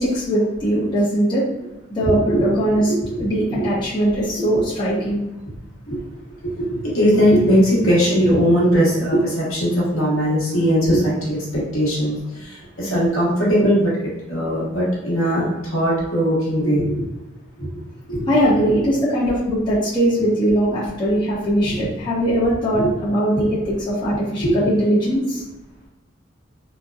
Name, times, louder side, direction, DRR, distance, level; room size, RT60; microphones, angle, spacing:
voice 1, 0.0-1.4 1.9-2.9 3.2-5.2 18.3-25.4, equal, 20° left, -9 dB, 0.6 m, -20 dB
voice 2, 6.4-17.0 17.6-17.7 18.1-18.3 22.7-22.9 24.4-24.5, equal, 80° left, -6 dB, 1.0 m, -19 dB
2.8 x 2.1 x 2.2 m, 0.99 s
head